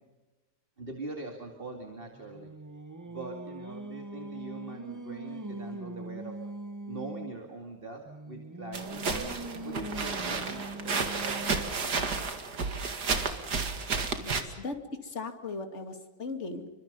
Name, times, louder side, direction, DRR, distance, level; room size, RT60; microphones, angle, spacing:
voice 1, 0.8-2.5 3.0-6.3 6.9-9.3 9.6-12.4, right 3 dB, 30° right, 2 dB, 2.6 m, -43 dB
Singing, 2.0-7.4 8.0-11.9, right 2 dB, 15° right, 0.6 m, -42 dB
sound 1, 8.7-14.4, right 4 dB, 70° right, 2.7 m, -32 dB
voice 2, 14.1-14.8 15.0-16.7, left 3 dB, 40° left, 6 dB, 2.7 m, -38 dB
29.0 x 25.0 x 5.4 m, 1.2 s
omnidirectional pair, 1.8 m